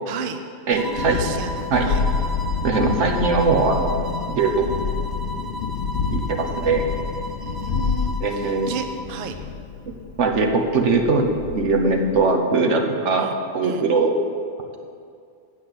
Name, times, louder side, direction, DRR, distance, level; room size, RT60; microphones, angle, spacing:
voice 1, 0.1-0.4 0.7-2.0 7.4-9.4 13.1-13.9, right 5 dB, 55° right, 7 dB, 0.7 m, -33 dB
Thunderstorm, 0.7-12.3, left 6 dB, 65° left, 0.8 m, -28 dB
voice 2, 0.7-1.2 1.7-1.9 2.6-3.9 4.3-4.7 6.1-6.8 8.2-8.7 10.2-11.3 11.5-13.3 13.5-14.2, right 4 dB, 85° right, 3 dB, 1.3 m, -20 dB
sound 1, 0.8-9.1, equal, 30° right, 0.4 m, -34 dB
8.6 x 6.1 x 7.8 m, 2.4 s
omnidirectional pair, 1.2 m